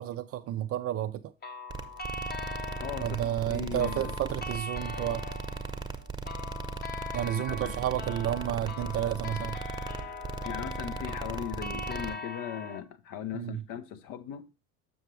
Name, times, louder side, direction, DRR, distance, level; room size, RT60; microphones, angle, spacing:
voice 1, 0.0-1.3 3.0-5.2 7.1-9.6 13.3-13.6, right 12 dB, 35° right, 0.5 m, -31 dB
sound 1, 1.4-12.8, left 3 dB, 20° left, 1.0 m, -41 dB
sound 2, 1.7-12.1, right 4 dB, 10° right, 1.0 m, -38 dB
voice 2, 2.8-4.1 7.2-7.8 10.4-14.5, left 9 dB, 50° left, 0.9 m, -39 dB
7.1 x 6.7 x 3.2 m
figure-of-eight pair, 65°, 45 cm